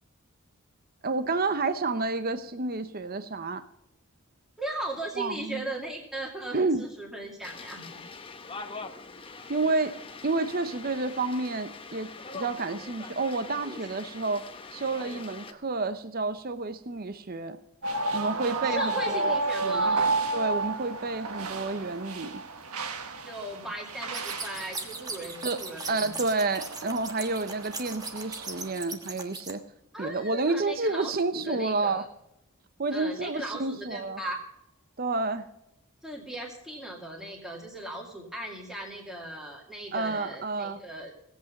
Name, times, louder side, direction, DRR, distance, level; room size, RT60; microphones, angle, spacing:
voice 1, 1.0-3.6 5.2-5.6 6.5-6.8 9.5-10.0 10.2-14.4 14.7-17.6 18.1-20.1 20.3-22.3 25.4-25.6 25.9-29.6 30.0-32.0 32.8-34.2 35.0-35.5 39.9-40.8, right 3 dB, 40° right, 11 dB, 0.7 m, -30 dB
voice 2, 4.6-8.0 13.6-13.9 18.5-20.3 23.2-26.1 29.9-32.1 32.9-34.4 36.0-41.1, right 1 dB, ahead, -3 dB, 2.3 m, -38 dB
sound 1, 7.4-15.5, left 4 dB, 25° left, 0.9 m, -43 dB
sound 2, 17.8-28.7, right 3 dB, 85° right, 1.5 m, -32 dB
sound 3, 24.1-29.5, right 3 dB, 15° right, 1.3 m, -38 dB
18.0 x 8.3 x 5.3 m, 0.81 s
head